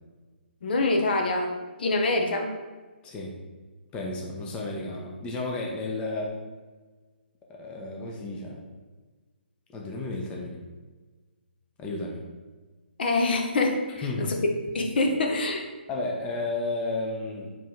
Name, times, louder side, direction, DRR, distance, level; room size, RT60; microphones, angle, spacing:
voice 1, 0.6-1.5 1.8-2.5 13.0-14.4 14.7-15.6, left 2 dB, 60° left, 2 dB, 0.7 m, -25 dB
voice 2, 3.0-3.3 3.9-6.4 7.5-8.6 9.7-10.6 11.8-12.2 14.0-14.3 15.9-17.6, left 2 dB, 15° left, -1 dB, 0.6 m, -32 dB
4.7 x 3.1 x 3.6 m, 1.3 s
hypercardioid pair, 145°, 6 cm